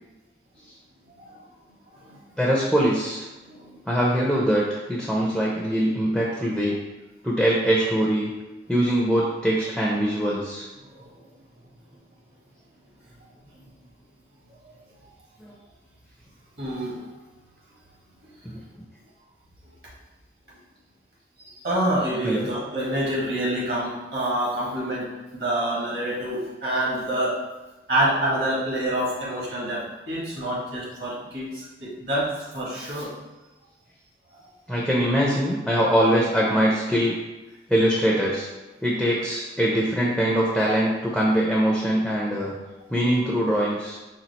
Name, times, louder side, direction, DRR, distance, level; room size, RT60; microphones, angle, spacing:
voice 1, 2.4-3.3 3.9-6.8 7.2-8.3 8.7-10.7 15.4-15.6 18.4-18.6 22.2-22.5 34.7-37.2 37.7-38.5 38.8-42.6 42.9-44.0, equal, ahead, -4 dB, 0.5 m, -22 dB
voice 2, 3.4-3.8 10.8-11.2 13.1-13.3 13.5-13.6 16.6-17.1 21.4-25.1 25.3-27.4 27.9-33.1 34.3-34.4, right 1 dB, 60° right, -6 dB, 1.5 m, -27 dB
4.3 x 2.5 x 4.0 m, 1.1 s
head